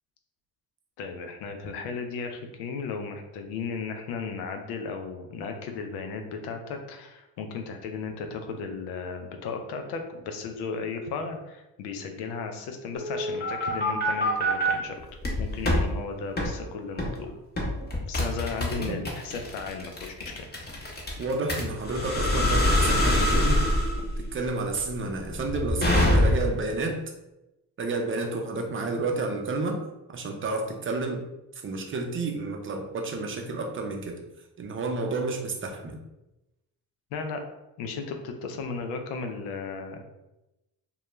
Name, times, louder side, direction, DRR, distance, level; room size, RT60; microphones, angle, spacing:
voice 1, 1.0-15.0 15.4-17.3 18.1-20.5 37.1-37.4 37.8-40.0, left 4 dB, 80° left, 5 dB, 0.5 m, -35 dB
sound 1, 13.0-14.7 15.2-15.8 16.4-16.5 17.0-17.2 17.6-26.6, left 1 dB, 25° left, 0.8 m, -25 dB
voice 2, 21.2-23.6 24.2-27.0 27.8-29.8 30.1-31.2 31.6-34.1 34.6-36.0, right 3 dB, 35° right, 2 dB, 0.5 m, -30 dB
2.2 x 2.1 x 3.0 m, 0.96 s
supercardioid pair, 65°, 38 cm